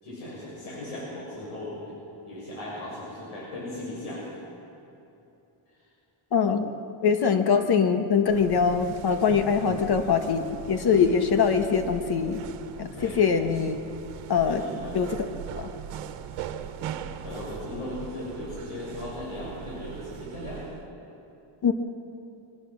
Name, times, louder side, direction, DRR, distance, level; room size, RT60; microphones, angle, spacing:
voice 1, 0.0-2.0 2.3-4.3 9.6-9.8 12.9-13.2 14.3-15.0 17.0-20.6, left 1 dB, 85° left, -6 dB, 7.0 m, -37 dB
voice 2, 6.3-6.7 7.0-12.4 12.8-13.8 14.3-14.6 14.9-15.2 15.6-15.7 21.6-21.7, left 6 dB, 50° left, 6 dB, 1.5 m, -23 dB
sound 1, 8.3-20.9, right 9 dB, 85° right, 1.3 m, -40 dB
25.5 x 18.0 x 6.3 m, 2.9 s
cardioid pair, 125°, 49 cm